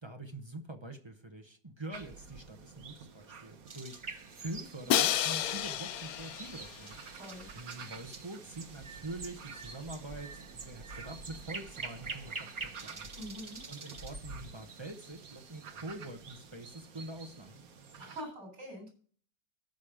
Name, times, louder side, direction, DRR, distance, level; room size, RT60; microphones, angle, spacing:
voice 1, 0.0-4.0 4.3-7.0 7.5-13.1 13.7-17.5, right 1 dB, 20° right, 5 dB, 0.9 m, -45 dB
sound 1, 1.9-18.2, right 5 dB, 60° right, 1.4 m, -50 dB
sound 2, 3.7-15.7, right 4 dB, 40° right, 0.4 m, -47 dB
Crash cymbal, 4.9-6.9, left 11 dB, 70° left, 1.0 m, -31 dB
voice 2, 7.1-7.5 13.1-13.6 18.0-18.9, equal, 90° right, 3 dB, 4.7 m, -44 dB
13.5 x 5.4 x 5.0 m, 0.44 s
omnidirectional pair, 1.8 m